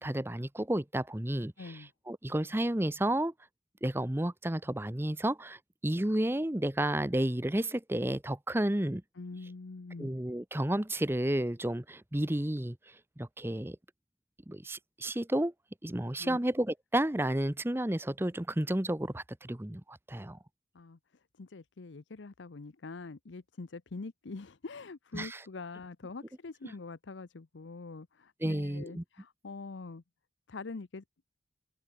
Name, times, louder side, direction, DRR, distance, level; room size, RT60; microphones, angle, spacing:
voice 1, 0.0-3.3 3.8-9.0 10.0-13.8 14.5-15.5 15.8-20.4 25.1-25.4 26.6-26.7 28.4-29.0, right 1 dB, 10° right, 0.8 m, -32 dB
voice 2, 1.6-1.9 9.2-10.1 16.2-16.4 20.7-21.0 21.4-30.0 30.5-31.0, left 3 dB, 85° left, 0.7 m, -44 dB
open air
head